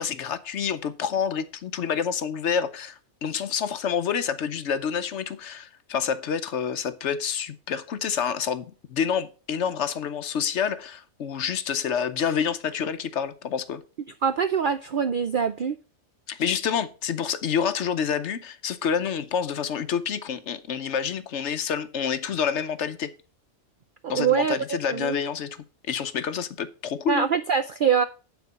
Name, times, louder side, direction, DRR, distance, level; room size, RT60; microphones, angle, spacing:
voice 1, 0.0-13.8 16.3-23.1 24.1-25.6 25.9-27.3, left 7 dB, 60° left, 0.9 m, -28 dB
voice 2, 14.2-15.8 24.0-25.2 27.1-28.0, right 7 dB, 65° right, 0.5 m, -24 dB
9.3 x 4.4 x 6.6 m
omnidirectional pair, 1.5 m